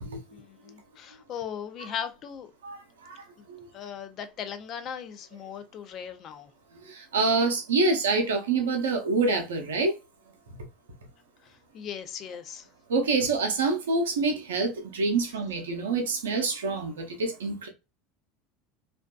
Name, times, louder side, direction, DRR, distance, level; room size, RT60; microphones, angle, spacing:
voice 1, 0.3-2.5 3.4-3.5 3.7-6.5 11.4-12.7, left 8 dB, 45° left, 0.5 m, -38 dB
voice 2, 2.6-3.7 6.8-10.0 12.9-17.7, right 3 dB, 85° right, 0.6 m, -26 dB
2.5 x 2.2 x 2.2 m
hypercardioid pair, 90°, 0 cm